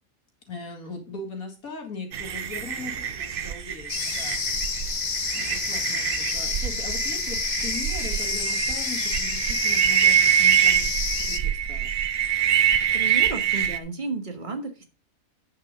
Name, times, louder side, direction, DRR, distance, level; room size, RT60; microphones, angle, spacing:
voice 1, 0.5-4.4 4.8-11.9, left 3 dB, 85° left, 3 dB, 2.7 m, -39 dB
sound 1, 2.1-13.8, right 9 dB, 50° right, 0.7 m, -25 dB
sound 2, 3.9-11.4, left 5 dB, 35° left, 0.9 m, -29 dB
voice 2, 12.9-14.8, right 3 dB, 35° right, 5 dB, 1.7 m, -33 dB
9.1 x 5.8 x 5.1 m, 0.33 s
omnidirectional pair, 1.5 m